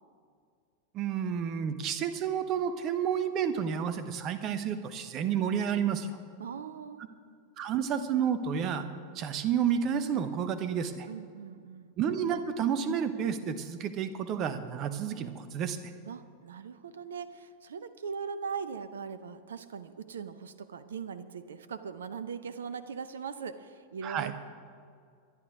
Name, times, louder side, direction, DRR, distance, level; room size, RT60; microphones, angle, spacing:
voice 1, 0.9-6.1 7.6-8.9 9.1-11.1 12.0-15.8 24.0-24.3, right 8 dB, 35° right, 11 dB, 1.0 m, -30 dB
voice 2, 6.4-7.1 11.1-11.9 16.1-24.3, right 6 dB, 65° right, 13 dB, 0.7 m, -40 dB
25.5 x 11.0 x 3.6 m, 2.2 s
figure-of-eight pair, 90°, 0 cm